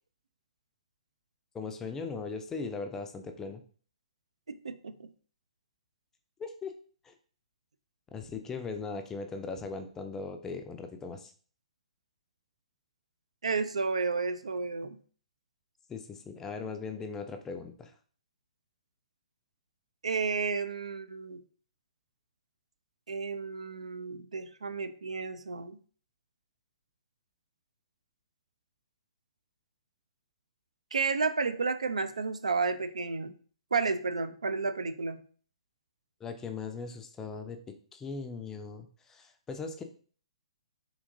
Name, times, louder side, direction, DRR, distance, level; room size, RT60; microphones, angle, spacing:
voice 1, 1.5-3.6 6.4-6.7 7.0-7.1 8.1-11.3 15.9-17.9 36.2-37.6 37.9-39.8, left 4 dB, 10° left, 6 dB, 0.4 m, -39 dB
voice 2, 4.5-5.1 13.4-15.0 20.0-21.4 23.1-25.8 30.9-33.3 33.7-35.2, right 4 dB, 75° right, 11 dB, 0.3 m, -32 dB
3.6 x 2.8 x 2.6 m, 0.44 s
figure-of-eight pair, 125°, 4 cm